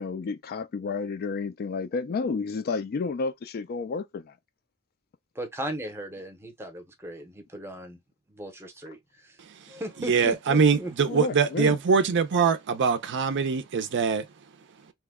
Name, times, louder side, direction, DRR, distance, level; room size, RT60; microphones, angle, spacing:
voice 1, 0.0-4.3 11.1-11.8, left 4 dB, 45° left, 0.3 m, -31 dB
voice 2, 5.3-8.0 8.3-9.4 9.7-10.9, right 1 dB, 10° right, 0.7 m, -37 dB
voice 3, 10.1-14.3, right 5 dB, 55° right, 0.5 m, -23 dB
3.0 x 2.1 x 3.4 m
head